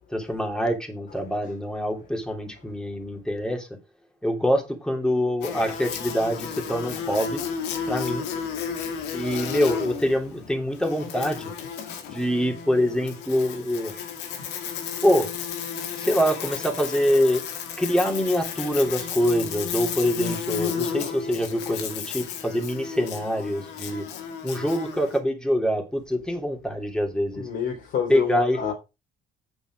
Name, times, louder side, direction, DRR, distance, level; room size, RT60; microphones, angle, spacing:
voice 1, 0.1-3.7 4.2-7.4 7.9-8.3 9.1-11.5 12.1-13.9 15.0-15.3 15.9-17.4 17.8-24.1 24.4-27.5 28.1-28.7, equal, 5° left, 3.1 m, -25 dB
Buzz, 5.4-25.2, left 7 dB, 90° left, 2.2 m, -33 dB
voice 2, 27.4-28.7, left 8 dB, 65° left, 3.5 m, -28 dB
9.0 x 6.8 x 4.8 m
cardioid pair, 110°, 17 cm